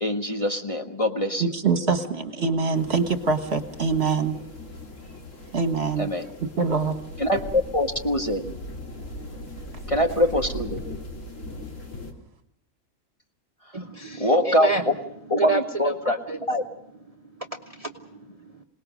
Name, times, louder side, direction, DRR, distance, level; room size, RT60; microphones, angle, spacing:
voice 1, 0.0-1.4 6.0-6.3 7.2-8.6 9.9-10.8 14.2-14.7 15.3-16.2 16.5-16.6, left 1 dB, 25° left, 3 dB, 1.4 m, -23 dB
voice 2, 1.4-4.4 5.5-6.1 6.6-6.9, right 4 dB, 50° right, 7 dB, 1.7 m, -24 dB
sound 1, 2.7-12.1, left 2 dB, 65° left, 2.8 m, -40 dB
sound 2, 7.2-12.0, right 4 dB, 50° left, 7.4 m, -41 dB
voice 3, 13.7-14.9 15.3-16.4 17.1-18.6, right 4 dB, 30° right, 4 dB, 1.2 m, -30 dB
27.0 x 19.0 x 6.4 m, 0.78 s
omnidirectional pair, 1.4 m